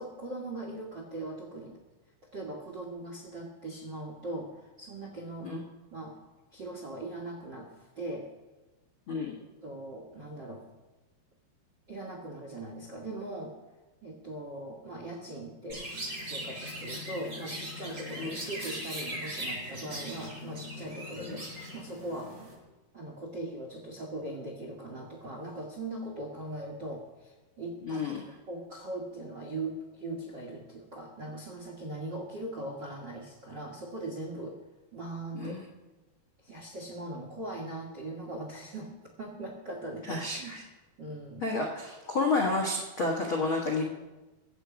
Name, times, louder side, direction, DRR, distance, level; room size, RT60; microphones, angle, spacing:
voice 1, 0.0-1.8 2.3-4.5 4.8-5.5 5.9-6.1 6.5-8.3 9.6-10.6 11.9-13.5 14.0-15.8 16.2-21.4 21.7-22.3 22.9-28.0 28.5-34.6 34.9-35.5 36.4-38.9 39.2-40.5 41.0-41.4, right 1 dB, 85° right, 2 dB, 0.9 m, -40 dB
voice 2, 9.1-9.4 18.2-18.3 21.2-21.4 27.8-28.2 35.3-35.7 40.1-40.6 41.4-43.8, left 3 dB, 85° left, 0 dB, 1.1 m, -30 dB
Chirp tweet, 15.7-22.5, equal, 15° right, 6.1 m, -39 dB
21.5 x 8.3 x 5.1 m, 1.1 s
omnidirectional pair, 5.0 m